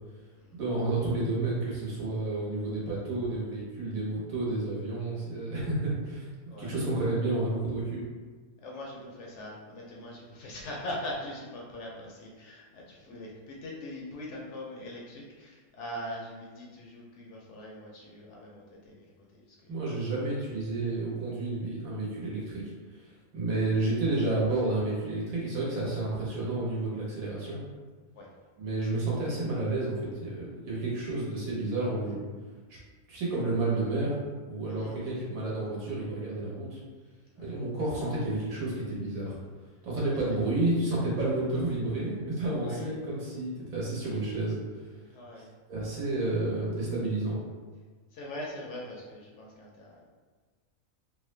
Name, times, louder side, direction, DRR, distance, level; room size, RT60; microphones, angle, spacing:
voice 1, 0.5-6.3 6.6-8.0 19.7-22.6 22.9-27.6 28.6-32.2 33.1-36.8 37.4-39.4 39.8-44.8 45.7-47.4, right 2 dB, 80° right, -5 dB, 1.4 m, -30 dB
voice 2, 6.5-6.8 8.6-19.1 19.3-19.7 28.2-28.3 34.7-35.0 37.4-37.6 42.6-42.9 45.1-45.5 48.1-50.1, left 1 dB, 65° left, -2 dB, 0.8 m, -42 dB
3.2 x 2.0 x 3.1 m, 1.4 s
omnidirectional pair, 1.5 m